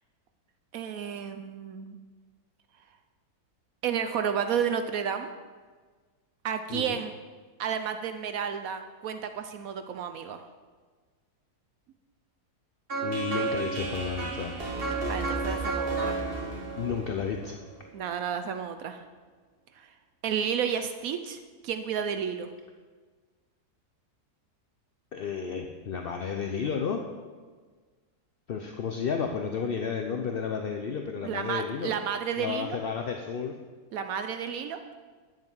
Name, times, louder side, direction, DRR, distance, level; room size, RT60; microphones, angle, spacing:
voice 1, 0.7-2.0 3.8-5.3 6.4-7.1 7.6-10.4 15.1-16.3 17.9-19.0 19.8-19.9 20.2-22.5 31.2-32.8 33.9-34.8, right 7 dB, 70° right, 8 dB, 1.0 m, -31 dB
voice 2, 6.7-7.0 13.0-14.6 16.8-17.6 25.1-27.0 28.5-31.9 32.4-33.5, left 6 dB, 55° left, 4 dB, 0.6 m, -32 dB
sound 1, 12.9-17.9, right 3 dB, 40° right, 1.7 m, -32 dB
9.8 x 7.6 x 5.5 m, 1.5 s
omnidirectional pair, 1.6 m